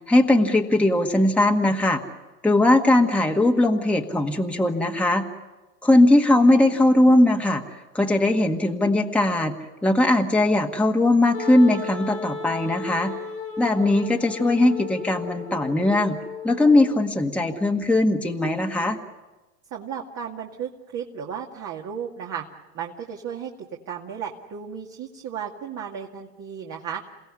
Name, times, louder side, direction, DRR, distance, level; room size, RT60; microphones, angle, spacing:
voice 1, 0.1-2.0 2.4-5.2 5.8-9.5 9.8-13.1 13.6-16.2 16.4-19.0, left 1 dB, 5° left, 2 dB, 1.8 m, -19 dB
Wind instrument woodwind instrument, 11.3-17.0, left 5 dB, 90° left, 4.6 m, -35 dB
voice 2, 19.7-22.4 22.7-23.5 23.9-27.0, right 8 dB, 35° right, 0 dB, 2.4 m, -34 dB
29.0 x 17.0 x 9.8 m, 1.1 s
hypercardioid pair, 100°, 49 cm